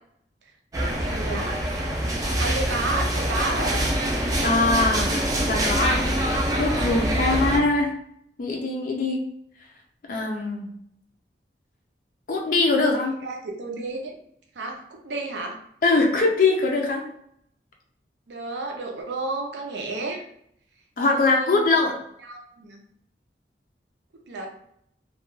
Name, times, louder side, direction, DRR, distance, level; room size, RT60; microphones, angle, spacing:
sound 1, 0.7-7.6, right 1 dB, 20° right, 0.4 m, -25 dB
voice 1, 0.8-1.6 2.4-3.9 4.9-5.0 5.5-5.7 7.1-7.4 13.2-14.1 14.6-15.6 18.3-20.2 21.1-21.6 22.2-22.8 24.3-24.5, right 3 dB, 85° right, 1 dB, 0.5 m, -32 dB
voice 2, 4.4-5.2 5.4-6.0 6.6-7.9 8.4-9.2 10.1-10.7 12.3-13.1 15.8-17.0 21.0-22.0, left 3 dB, 50° left, 1 dB, 0.4 m, -22 dB
2.3 x 2.2 x 2.9 m, 0.71 s
head